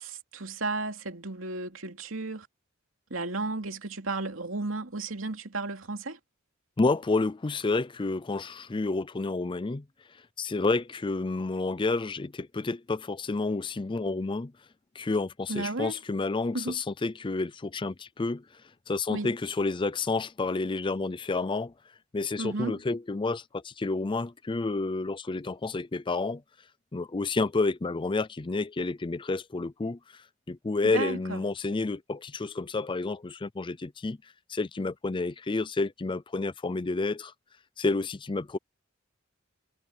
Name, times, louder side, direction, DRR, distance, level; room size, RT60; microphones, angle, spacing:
voice 1, 0.0-2.5 3.1-6.2 15.5-16.0 16.5-16.8 19.1-19.3 22.4-22.8 30.8-31.4, right 3 dB, 85° right, 2.8 m, -33 dB
voice 2, 6.8-9.8 10.4-14.5 15.0-18.4 18.9-21.7 22.1-26.4 26.9-30.0 30.5-34.2 34.5-37.3 37.8-38.6, left 3 dB, 25° left, 0.5 m, -30 dB
head